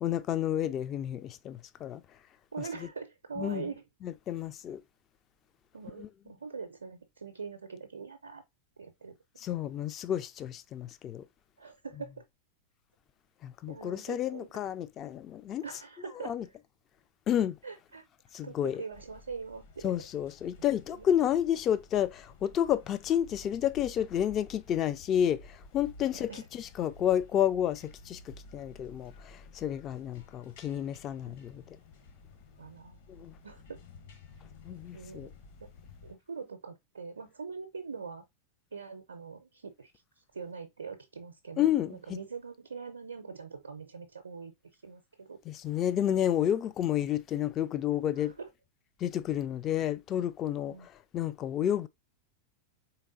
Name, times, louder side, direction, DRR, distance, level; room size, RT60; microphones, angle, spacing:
voice 1, 0.0-2.0 3.4-3.7 4.0-4.8 6.0-6.1 9.4-11.2 13.4-15.6 16.2-16.5 17.3-17.6 18.3-18.8 19.8-31.6 33.1-33.4 34.6-35.3 41.6-42.2 45.5-48.3 49.0-51.9, left 10 dB, 30° left, 0.3 m, -30 dB
voice 2, 2.5-3.8 5.7-8.4 8.8-9.2 11.6-12.2 13.7-14.5 15.6-16.4 17.6-18.0 18.4-19.7 20.9-21.1 26.1-26.5 31.3-31.4 32.6-33.0 33.4-33.8 34.9-35.3 35.6-35.7 36.0-38.2 38.7-39.9 40.3-44.5 44.8-45.4 46.0-46.2 48.0-48.5 50.7-50.9, right 5 dB, 70° right, 0.5 m, -43 dB
sound 1, 18.9-36.1, left 3 dB, 55° left, 1.1 m, -53 dB
4.0 x 3.5 x 2.5 m
figure-of-eight pair, 90°, 0 cm